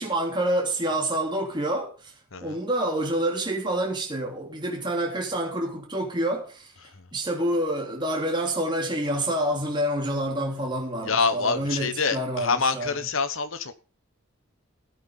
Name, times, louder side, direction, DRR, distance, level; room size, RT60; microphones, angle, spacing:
voice 1, 0.0-2.1 2.4-6.7 7.1-13.1, right 1 dB, 20° right, 3.2 m, -27 dB
voice 2, 11.0-13.8, left 4 dB, 60° left, 1.2 m, -26 dB
15.0 x 8.7 x 5.5 m
head